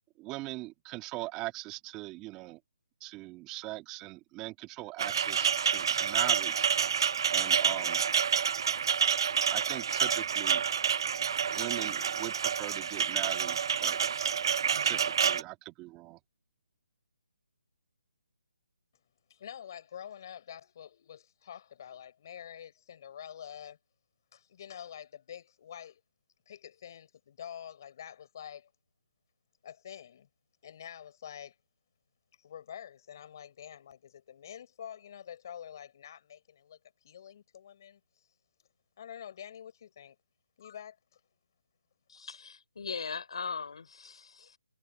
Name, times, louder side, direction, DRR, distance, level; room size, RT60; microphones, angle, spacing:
voice 1, 0.2-2.6 3.0-6.7 7.3-8.0 9.5-10.6 11.5-14.0 14.8-16.2, right 19 dB, 15° right, 2.1 m, -41 dB
sound 1, 5.0-15.4, right 7 dB, 45° right, 0.3 m, -28 dB
voice 2, 19.3-23.8 24.3-26.0 26.5-28.7 29.6-30.3 30.6-31.5 32.4-38.0 39.0-40.2 40.6-41.2, left 9 dB, 40° left, 5.0 m, -47 dB
voice 3, 42.1-44.6, left 5 dB, 65° left, 4.2 m, -39 dB
hypercardioid pair, 165°, 3 cm